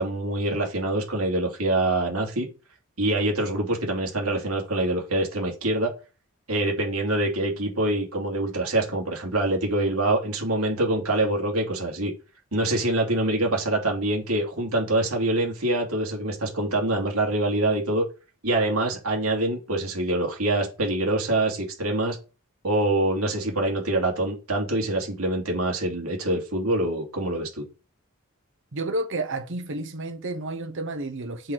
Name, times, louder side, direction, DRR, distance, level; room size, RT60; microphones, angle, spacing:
voice 1, 0.0-2.5 3.0-5.9 6.5-12.1 12.5-18.0 18.4-22.2 22.6-27.6, right 1 dB, 85° right, 2.8 m, -25 dB
voice 2, 28.7-31.5, right 2 dB, 60° right, 1.1 m, -31 dB
7.8 x 4.3 x 4.8 m
head